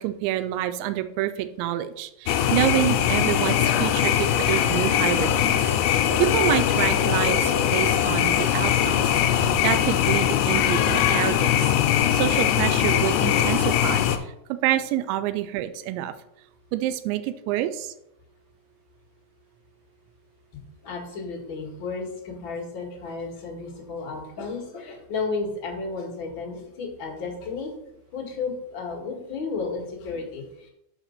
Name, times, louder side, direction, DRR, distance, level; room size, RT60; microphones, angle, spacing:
voice 1, 0.0-5.6 5.9-9.2 9.6-11.7 12.1-14.1 14.5-16.1 16.7-17.9, right 13 dB, 85° right, 11 dB, 2.9 m, -27 dB
sound 1, 2.3-14.2, left 10 dB, 85° left, 2.3 m, -21 dB
voice 2, 20.5-27.7 28.1-30.7, left 4 dB, 55° left, -2 dB, 1.4 m, -33 dB
6.0 x 5.0 x 6.5 m, 0.79 s
omnidirectional pair, 5.2 m